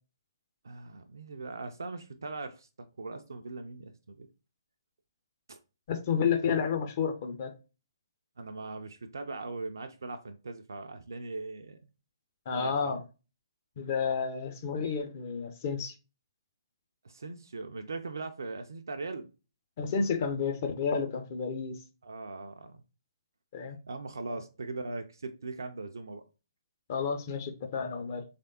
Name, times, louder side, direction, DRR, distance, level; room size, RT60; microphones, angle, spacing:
voice 1, 0.6-4.3 5.5-5.6 8.4-11.8 12.5-13.0 17.0-19.3 19.8-20.2 22.0-22.8 23.9-26.3, right 3 dB, 65° right, 0.4 m, -40 dB
voice 2, 5.9-7.5 12.5-13.0 13.8-15.9 19.8-21.8 23.5-23.8 24.3-24.4 26.9-28.2, left 6 dB, 40° left, 0.6 m, -31 dB
3.3 x 3.3 x 2.7 m
figure-of-eight pair, 130°, 2 cm